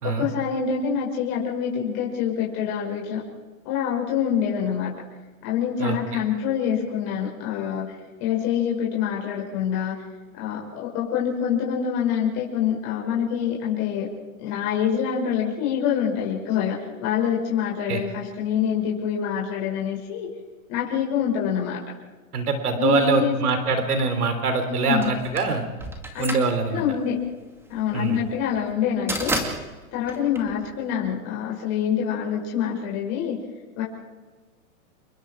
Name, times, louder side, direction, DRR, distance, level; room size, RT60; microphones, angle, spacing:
voice 1, 0.0-3.2 3.6-4.9 5.4-10.0 10.4-14.1 14.4-20.3 20.7-21.8 22.8-23.6 24.7-25.2 26.1-26.3 26.7-27.2 27.7-29.4 29.9-33.4 33.8-33.9, left 8 dB, 35° left, -3 dB, 6.3 m, -26 dB
voice 2, 22.3-25.7 26.2-26.8 27.9-28.2, right 4 dB, 85° right, 7 dB, 3.6 m, -23 dB
sound 1, 25.0-31.2, right 1 dB, 5° right, 2.3 m, -32 dB
28.5 x 22.5 x 4.7 m, 1.3 s
hypercardioid pair, 145°, 44 cm